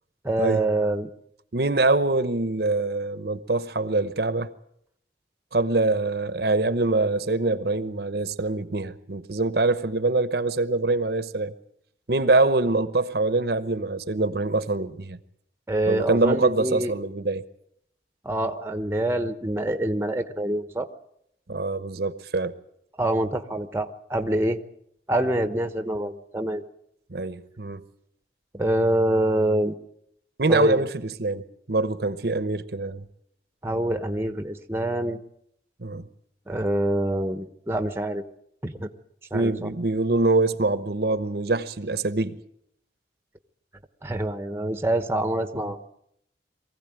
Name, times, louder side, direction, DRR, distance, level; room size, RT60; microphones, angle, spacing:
voice 1, 0.2-1.1 15.7-16.9 18.2-20.9 23.0-24.6 25.1-26.6 28.5-29.8 30.5-30.8 33.6-35.2 36.5-38.2 38.6-38.9 39.3-39.7 44.0-45.8, right 1 dB, 15° right, 1.0 m, -25 dB
voice 2, 1.5-4.5 5.5-11.5 12.1-15.2 15.9-17.4 21.5-22.5 27.1-27.8 30.4-33.0 35.8-36.1 39.3-42.4 45.5-45.7, right 2 dB, 55° right, 1.0 m, -24 dB
23.0 x 16.0 x 9.0 m
head